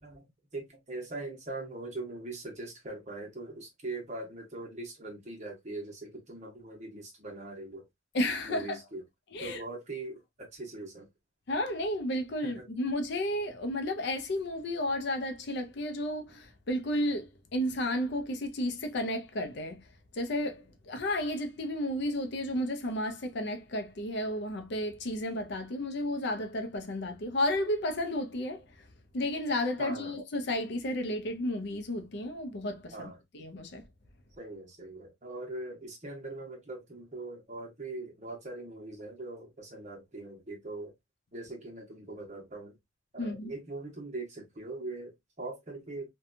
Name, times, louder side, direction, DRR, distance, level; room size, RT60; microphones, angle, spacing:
voice 1, 0.0-7.8 8.4-9.0 9.4-11.1 12.4-12.7 29.8-30.2 32.9-33.2 34.4-40.9 41.3-42.8 43.1-46.1, right 2 dB, 40° right, 1.0 m, -41 dB
voice 2, 8.1-8.8 9.3-9.6 11.5-19.8 20.1-28.7 29.1-33.8 43.2-43.5, left 1 dB, 65° left, 0.5 m, -32 dB
2.7 x 2.2 x 2.5 m
head